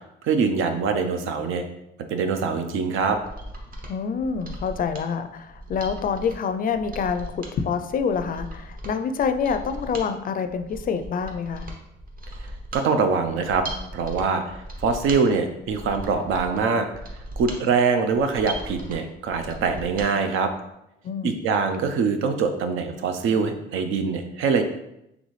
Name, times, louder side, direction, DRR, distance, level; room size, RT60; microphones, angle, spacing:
voice 1, 0.2-1.6 2.1-3.2 12.7-13.6 13.9-14.4 14.8-16.9 17.4-20.5 21.2-24.6, right 5 dB, 85° right, 7 dB, 0.5 m, -23 dB
Mechanisms, 3.2-20.1 20.4-20.5, right 1 dB, 45° right, 0.9 m, -38 dB
voice 2, 3.9-11.7 21.0-21.4, left 6 dB, 45° left, 9 dB, 0.4 m, -27 dB
4.0 x 3.4 x 3.2 m, 0.83 s
cardioid pair, 90°, 20 cm